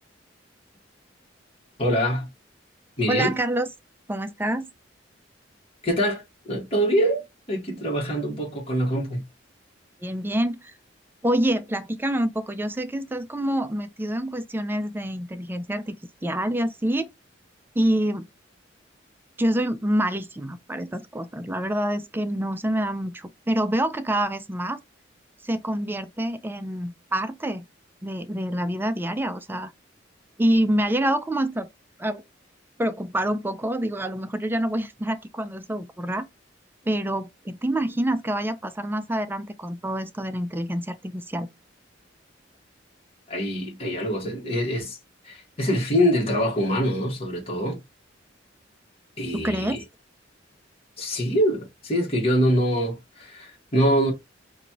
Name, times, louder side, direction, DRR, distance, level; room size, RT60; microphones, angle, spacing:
voice 1, 1.8-2.3 3.0-3.3 5.8-6.2 6.5-9.2 43.3-45.0 45.2-47.8 49.2-49.8 51.0-54.1, equal, 30° left, 1.6 m, -24 dB
voice 2, 3.1-3.7 4.1-4.7 10.0-10.7 11.2-16.0 16.2-17.1 17.8-18.3 19.4-24.8 25.4-27.6 28.0-29.7 30.4-31.7 32.0-32.2 32.8-36.2 36.9-41.5 49.3-49.8, right 1 dB, 10° right, 0.4 m, -26 dB
4.1 x 2.6 x 2.9 m
head